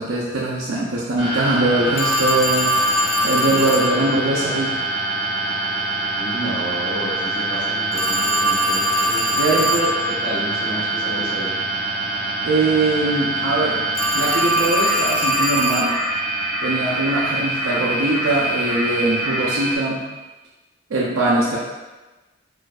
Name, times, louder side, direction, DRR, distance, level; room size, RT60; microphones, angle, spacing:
voice 1, 0.0-2.7 3.2-4.7 9.4-9.9 12.4-13.8 14.1-15.9 16.6-20.0 20.9-21.6, right 2 dB, 80° right, -6 dB, 0.6 m, -21 dB
sound 1, 1.2-19.8, right 2 dB, 20° right, 1.0 m, -25 dB
Telephone, 2.0-3.9 7.9-10.0 13.9-15.9, equal, 60° left, 0.5 m, -22 dB
voice 2, 3.4-4.0 6.2-9.8 10.2-11.6 12.5-12.7, equal, 40° right, -9 dB, 1.5 m, -31 dB
4.2 x 2.6 x 2.4 m, 1.1 s
head